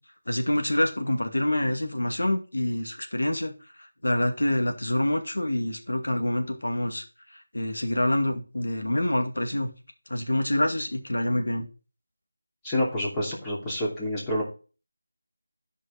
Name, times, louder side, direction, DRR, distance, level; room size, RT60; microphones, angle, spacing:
voice 1, 0.3-3.5 4.0-7.0 7.5-9.7 10.1-11.7, left 1 dB, 70° left, 4 dB, 2.2 m, -26 dB
voice 2, 12.6-14.4, left 1 dB, 10° left, -5 dB, 2.9 m, -28 dB
13.0 x 5.4 x 4.2 m, 0.34 s
figure-of-eight pair, 165°, 0 cm